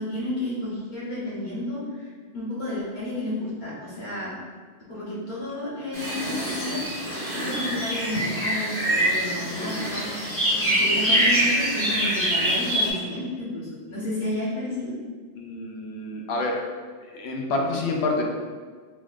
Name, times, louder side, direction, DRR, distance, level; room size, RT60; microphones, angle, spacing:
voice 1, 0.0-4.3 4.9-14.9, left 1 dB, 40° left, -9 dB, 1.3 m, -32 dB
sound 1, 5.9-12.9, right 1 dB, 10° left, 1.2 m, -25 dB
voice 2, 15.3-16.6 17.0-18.2, left 2 dB, 70° left, 1 dB, 0.8 m, -28 dB
4.0 x 3.1 x 2.4 m, 1.6 s
omnidirectional pair, 1.2 m